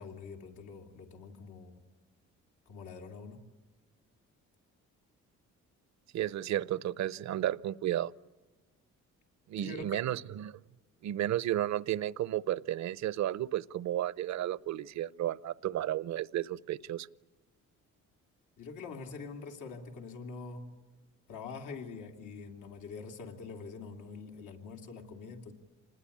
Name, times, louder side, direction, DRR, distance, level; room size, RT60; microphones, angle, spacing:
voice 1, 0.0-1.8 2.7-3.4 9.6-10.0 18.6-20.7 21.3-25.5, left 4 dB, 85° left, 2.8 m, -45 dB
voice 2, 6.1-8.1 9.5-10.6 11.0-17.1, right 12 dB, 65° right, 0.7 m, -33 dB
27.0 x 20.0 x 8.6 m
cardioid pair, 90°, 30 cm